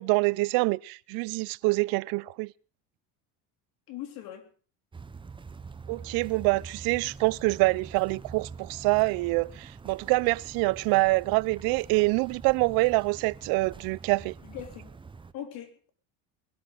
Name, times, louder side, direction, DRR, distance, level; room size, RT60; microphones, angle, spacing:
voice 1, 0.0-2.5 5.9-14.3, right 24 dB, 70° right, 0.6 m, -26 dB
voice 2, 3.9-4.5 14.4-14.9 15.3-15.9, left 11 dB, 70° left, 3.5 m, -40 dB
sound 1, 4.9-15.3, right 5 dB, 15° right, 0.6 m, -45 dB
21.5 x 13.0 x 3.9 m
supercardioid pair, 105°, 37 cm